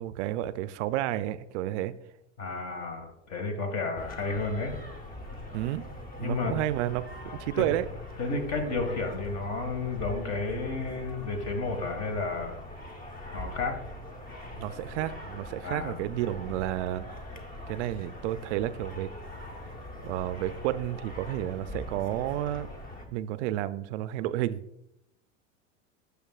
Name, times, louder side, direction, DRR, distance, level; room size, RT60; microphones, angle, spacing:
voice 1, 0.0-1.9 5.5-5.8 6.2-7.0 7.4-7.8 14.6-17.1 17.7-19.1 20.0-22.7 23.1-24.6, right 13 dB, 65° right, 14 dB, 0.5 m, -31 dB
voice 2, 2.4-4.7 6.2-6.5 7.5-7.7 8.2-12.6 13.3-13.8 15.6-16.1, left 3 dB, 45° left, 5 dB, 1.7 m, -32 dB
sound 1, 4.0-23.1, left 1 dB, 20° left, 1.1 m, -42 dB
9.0 x 6.5 x 2.4 m, 0.83 s
hypercardioid pair, 100°, 38 cm